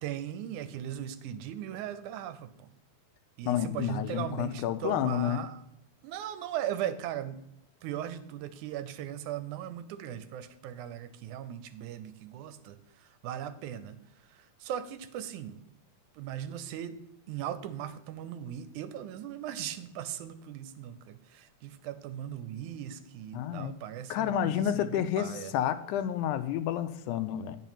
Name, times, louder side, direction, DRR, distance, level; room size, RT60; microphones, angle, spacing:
voice 1, 0.0-2.7 3.4-5.6 6.0-7.4 7.8-15.6 16.2-17.0 17.3-25.5, right 10 dB, 80° right, 12 dB, 2.1 m, -38 dB
voice 2, 3.5-5.5 23.3-23.7 24.1-27.6, left 10 dB, 85° left, 10 dB, 2.1 m, -30 dB
9.2 x 5.4 x 5.6 m, 0.83 s
omnidirectional pair, 3.5 m